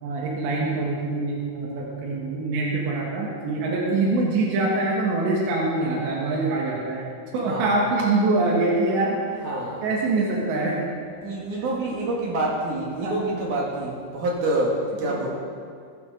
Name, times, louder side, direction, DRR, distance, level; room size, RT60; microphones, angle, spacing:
voice 1, 0.0-7.1 7.3-9.2 9.8-10.8 13.0-13.4 15.0-15.2, right 2 dB, 80° right, -3 dB, 3.9 m, -24 dB
voice 2, 9.4-9.9 11.2-15.3, right 2 dB, 55° right, -2 dB, 2.9 m, -27 dB
21.0 x 9.9 x 3.9 m, 2.2 s
omnidirectional pair, 5.0 m